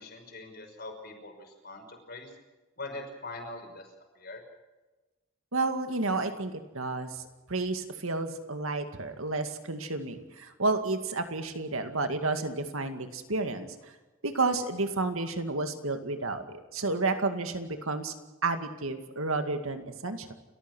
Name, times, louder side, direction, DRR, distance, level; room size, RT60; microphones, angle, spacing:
voice 1, 0.0-2.3 2.8-3.8 4.2-4.4, left 2 dB, 45° left, 3 dB, 5.8 m, -42 dB
voice 2, 5.5-7.2 7.5-13.7 14.2-18.1 18.4-20.3, right 3 dB, 80° right, 7 dB, 2.2 m, -31 dB
30.0 x 14.5 x 6.3 m, 1.2 s
head